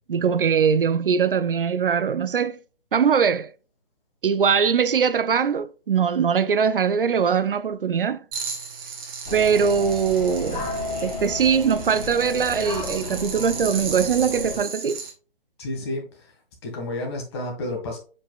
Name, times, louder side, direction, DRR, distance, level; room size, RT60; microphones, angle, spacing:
voice 1, 0.1-2.6 2.9-3.5 4.2-8.2 9.3-10.7 11.0-15.0, right 6 dB, 65° right, 0.5 m, -21 dB
sound 1, 8.3-15.1, right 5 dB, 25° right, 1.5 m, -35 dB
sound 2, 9.2-14.6, left 2 dB, 45° left, 2.2 m, -33 dB
voice 2, 15.6-16.3 16.6-18.0, left 2 dB, 25° left, 2.1 m, -31 dB
7.4 x 5.3 x 2.4 m
figure-of-eight pair, 155°, 29 cm